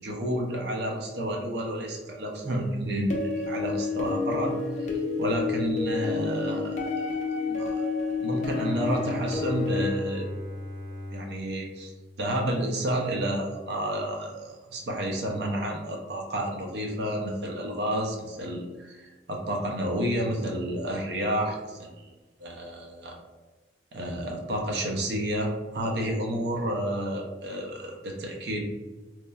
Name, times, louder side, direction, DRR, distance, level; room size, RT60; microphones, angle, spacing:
voice 1, 0.0-7.1 7.5-7.7 8.2-10.3 11.1-11.9 12.2-22.0 22.4-23.2 23.9-28.6, right 1 dB, 65° right, 1 dB, 0.5 m, -30 dB
sound 1, 3.1-9.9, left 4 dB, 40° left, 0.4 m, -29 dB
Bowed string instrument, 8.6-13.1, left 1 dB, 20° right, 0.5 m, -42 dB
2.9 x 2.3 x 2.2 m, 1.2 s
head